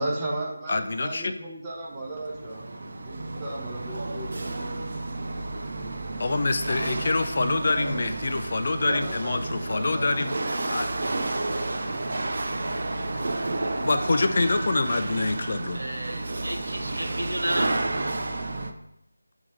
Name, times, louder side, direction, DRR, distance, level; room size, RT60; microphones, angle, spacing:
voice 1, 0.0-2.7 3.0-4.6 5.6-5.9 8.8-9.4 9.6-10.3, right 1 dB, 10° right, -5 dB, 1.1 m, -35 dB
voice 2, 0.7-1.3 6.2-10.4 10.7-10.9 11.3-11.4 13.8-15.8, left 3 dB, 40° left, 8 dB, 0.4 m, -26 dB
Chatter / Hiss / Rattle, 1.8-18.7, right 2 dB, 45° right, 0.6 m, -31 dB
voice 3, 12.8-13.3 15.7-17.8, right 1 dB, 65° right, 4 dB, 1.0 m, -32 dB
6.8 x 3.5 x 5.1 m, 0.78 s
figure-of-eight pair, 160°, 0 cm